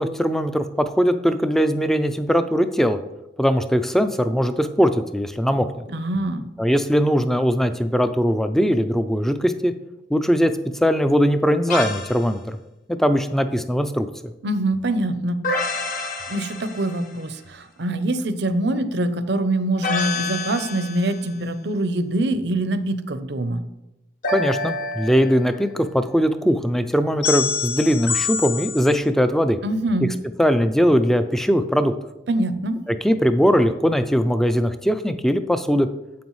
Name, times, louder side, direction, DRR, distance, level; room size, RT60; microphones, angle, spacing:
voice 1, 0.0-3.0 3.4-5.7 6.6-9.7 10.1-10.5 10.8-12.6 12.9-14.1 24.3-29.6 30.4-31.9 32.9-35.9, equal, ahead, 10 dB, 0.4 m, -20 dB
voice 2, 5.9-6.5 14.4-23.6 29.6-30.1 32.3-32.8, right 1 dB, 60° right, 11 dB, 0.6 m, -24 dB
sound 1, 11.7-12.2 15.4-17.2 19.8-21.3 24.2-25.7 27.2-29.0, left 4 dB, 45° left, 1.0 m, -27 dB
9.3 x 7.7 x 3.1 m, 0.93 s
head